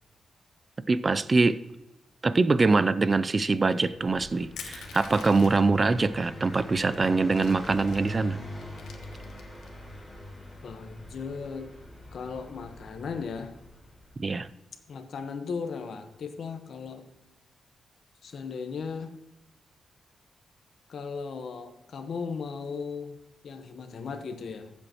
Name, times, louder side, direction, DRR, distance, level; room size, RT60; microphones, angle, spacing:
voice 1, 0.9-1.6 2.2-8.4 14.2-14.5, right 3 dB, 35° right, 14 dB, 0.5 m, -24 dB
Car passing by, 3.8-14.4, left 1 dB, 15° left, 3.9 m, -43 dB
Crushing, 4.6-5.8 6.5-6.6 6.9-8.2 8.6-9.7, left 6 dB, 90° left, 1.1 m, -44 dB
voice 2, 10.6-11.7 12.1-13.5 14.9-17.1 18.2-19.2 20.9-23.2 23.4-24.7, left 5 dB, 70° left, 7 dB, 1.1 m, -36 dB
15.0 x 7.8 x 3.0 m, 0.96 s
cardioid pair, 85°, 0 cm